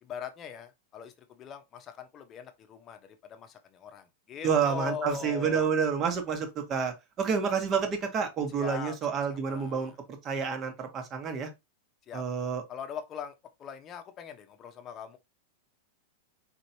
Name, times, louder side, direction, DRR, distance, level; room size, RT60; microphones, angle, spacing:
voice 1, 0.0-5.7 8.5-10.0 12.1-12.2 12.7-15.2, left 8 dB, 30° left, 0.8 m, -41 dB
voice 2, 4.4-9.9 10.2-11.5 12.1-12.6, right 6 dB, 30° right, 1.1 m, -29 dB
4.3 x 3.0 x 2.7 m
hypercardioid pair, 125°, 0 cm